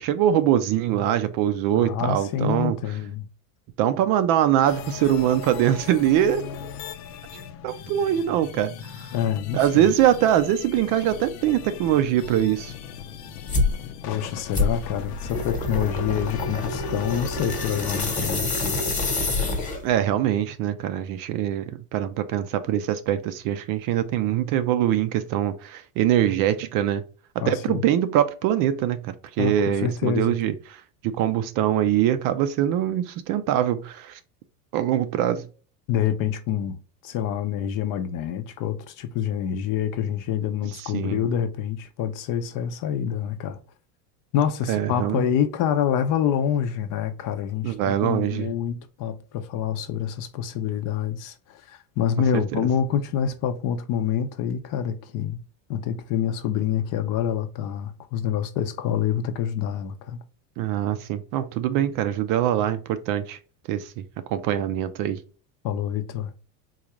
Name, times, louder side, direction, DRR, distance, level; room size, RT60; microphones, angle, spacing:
voice 1, 0.0-2.8 3.8-6.4 7.6-8.7 9.5-12.7 19.8-27.0 27.4-30.5 31.0-34.2 34.7-35.4 40.8-41.3 44.7-45.3 47.6-48.5 60.6-63.4 63.7-64.0 64.3-65.2, right 11 dB, 50° right, 0.5 m, -23 dB
voice 2, 1.7-3.3 9.1-9.9 14.0-18.8 27.4-27.8 29.4-30.4 35.9-36.8 37.0-43.6 44.3-47.7 48.0-55.4 55.7-60.2 65.6-66.3, left 9 dB, 45° left, 0.6 m, -27 dB
sound 1, 4.7-18.3, left 8 dB, 85° left, 0.7 m, -38 dB
sound 2, 13.5-13.8 14.5-20.0, left 2 dB, 15° left, 1.1 m, -26 dB
3.9 x 2.4 x 3.0 m
supercardioid pair, 135°, 46 cm